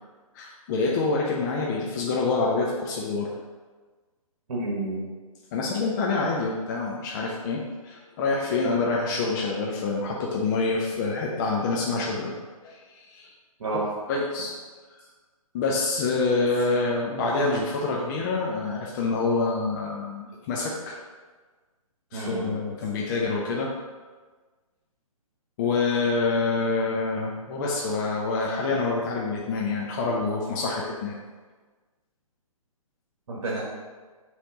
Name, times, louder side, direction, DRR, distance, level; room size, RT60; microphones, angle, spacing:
voice 1, 0.3-3.3 5.5-12.3 12.6-13.3 14.1-14.5 15.5-21.0 22.1-23.7 25.6-31.2, left 3 dB, 30° left, -3 dB, 0.8 m, -26 dB
voice 2, 4.5-5.0 13.6-13.8 22.1-22.6 33.3-33.6, right 2 dB, 55° right, -6 dB, 1.8 m, -30 dB
7.6 x 3.4 x 4.1 m, 1.4 s
figure-of-eight pair, 135°, 19 cm